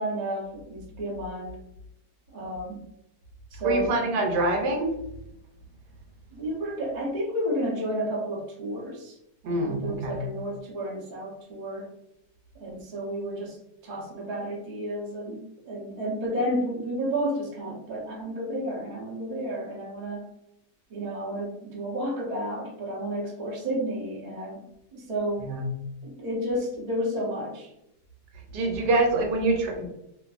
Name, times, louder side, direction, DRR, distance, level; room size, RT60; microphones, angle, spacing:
voice 1, 0.0-1.6 2.3-2.8 3.5-4.0 6.3-9.2 9.4-11.9 12.5-13.6 13.8-20.3 20.9-24.6 24.9-25.6 26.0-27.7, equal, 55° right, -3 dB, 0.4 m, -31 dB
voice 2, 3.6-4.9 9.4-10.2 25.4-25.7 28.5-29.9, right 2 dB, 85° right, 1 dB, 1.3 m, -25 dB
2.6 x 2.5 x 2.3 m, 0.83 s
omnidirectional pair, 1.8 m